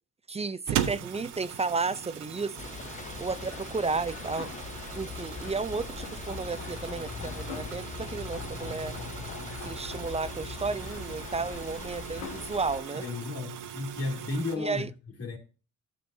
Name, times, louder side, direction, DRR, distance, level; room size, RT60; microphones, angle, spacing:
voice 1, 0.3-2.7 3.2-4.5 4.9-9.0 9.6-13.0 14.6-14.9, right 4 dB, 20° right, 0.5 m, -33 dB
sound 1, 0.7-14.6, right 10 dB, 90° right, 1.1 m, -39 dB
sound 2, 1.0-14.7, left 6 dB, 80° left, 1.9 m, -47 dB
sound 3, 2.6-12.8, left 5 dB, 25° left, 0.7 m, -41 dB
voice 2, 12.9-14.9 15.2-15.4, left 3 dB, 50° left, 2.5 m, -33 dB
13.0 x 6.8 x 2.7 m
cardioid pair, 90°, 30 cm